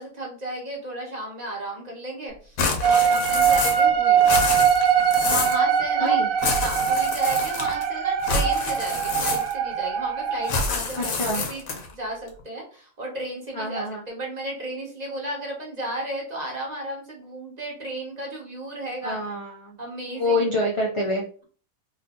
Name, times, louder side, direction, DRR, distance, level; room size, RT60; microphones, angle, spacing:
voice 1, 0.0-4.2 5.2-6.2 6.6-11.6 11.9-19.2 19.8-20.5, right 1 dB, 30° right, -1 dB, 1.1 m, -34 dB
sound 1, 2.6-3.9 4.2-5.6 6.4-7.8 8.2-9.7 10.5-11.9, left 3 dB, 75° left, 1.2 m, -27 dB
voice 2, 2.8-3.2 6.0-6.3 10.9-11.4 13.5-14.0 19.0-19.8 20.1-21.3, left 1 dB, 45° left, -2 dB, 0.4 m, -27 dB
sound 2, 2.8-10.5, right 7 dB, 70° right, 0.9 m, -22 dB
3.2 x 2.6 x 3.6 m, 0.42 s
omnidirectional pair, 1.5 m